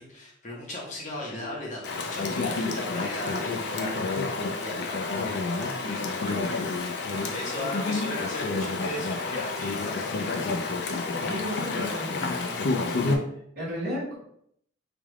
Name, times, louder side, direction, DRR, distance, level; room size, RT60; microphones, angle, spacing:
voice 1, 0.0-11.0, left 1 dB, 40° left, -4 dB, 1.0 m, -38 dB
Chatter / Stream, 1.8-13.2, left 3 dB, 55° left, 0.4 m, -29 dB
voice 2, 11.2-12.7 13.3-14.2, equal, 50° right, -8 dB, 1.1 m, -35 dB
3.3 x 2.4 x 3.0 m, 0.69 s
head